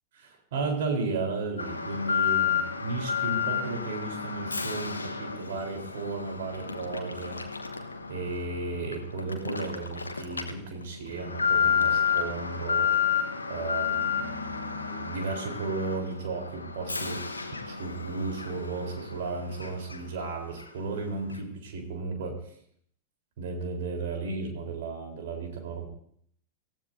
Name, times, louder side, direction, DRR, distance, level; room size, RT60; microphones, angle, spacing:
voice 1, 0.2-7.4 8.1-22.4 23.4-25.9, right 3 dB, 55° right, 3 dB, 3.8 m, -34 dB
Alarm, 1.6-20.3 20.6-20.7 21.3-21.4, left 7 dB, 80° left, 1.2 m, -31 dB
26.0 x 15.0 x 2.7 m, 0.65 s
figure-of-eight pair, 90°, 0 cm